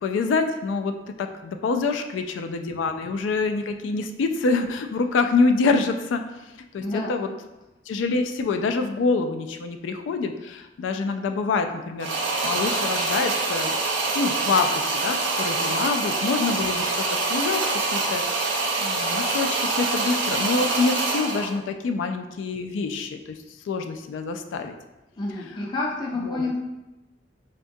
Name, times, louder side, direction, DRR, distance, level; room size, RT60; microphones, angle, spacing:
voice 1, 0.0-0.9 1.2-6.2 6.7-6.8 7.1-7.3 7.9-12.1 12.4-13.8 14.1-17.6 17.9-18.2 18.8-23.4 23.7-24.7 26.2-26.5, left 4 dB, 80° left, 6 dB, 0.3 m, -26 dB
voice 2, 6.8-7.1 25.2-26.6, left 2 dB, 25° left, -4 dB, 0.5 m, -29 dB
sound 1, 12.0-21.6, right 3 dB, 80° right, 0.5 m, -25 dB
3.6 x 2.2 x 2.6 m, 1.0 s
head